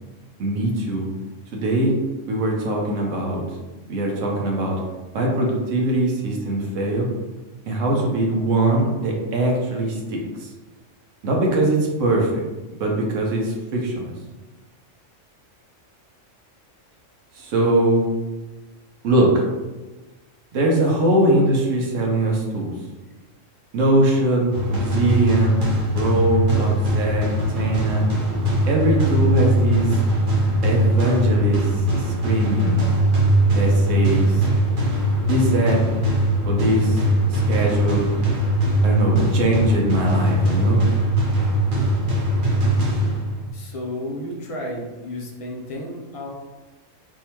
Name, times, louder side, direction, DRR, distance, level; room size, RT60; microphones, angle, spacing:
voice 1, 0.4-1.1 1.5-1.9 2.3-3.4 3.9-4.8 5.1-7.1 7.7-10.2 11.2-12.4 12.8-14.1 17.4-18.1 19.0-19.4 20.5-22.7 23.7-25.6 25.9-28.0 28.7-29.9 30.6-32.8 33.5-34.5 35.3-35.8 36.5-37.0 37.3-38.1 38.8-40.8, right 1 dB, 80° right, -1 dB, 1.1 m, -21 dB
sound 1, 24.5-43.5, right 1 dB, 45° right, 0.9 m, -21 dB
voice 2, 43.5-46.3, left 1 dB, 60° left, -1 dB, 0.3 m, -32 dB
3.5 x 2.6 x 2.9 m, 1.2 s
omnidirectional pair, 1.3 m